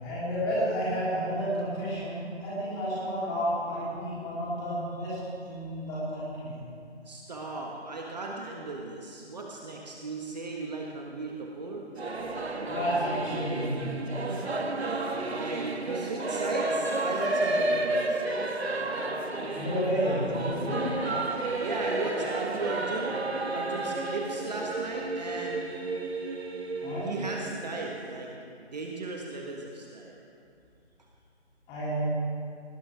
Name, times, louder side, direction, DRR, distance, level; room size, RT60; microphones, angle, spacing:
voice 1, 0.0-5.2 5.4-6.5 12.7-13.7 19.5-20.9 26.8-27.1 31.7-32.1, equal, 10° left, -9 dB, 3.6 m, -31 dB
voice 2, 7.0-11.9 14.3-18.4 21.6-23.2 23.5-25.7 27.1-28.3 28.6-30.2, right 2 dB, 35° right, -1 dB, 1.6 m, -36 dB
Singing / Musical instrument, 12.0-28.3, right 2 dB, 65° right, 1.6 m, -32 dB
19.0 x 17.5 x 3.6 m, 2.4 s
figure-of-eight pair, 155°, 35 cm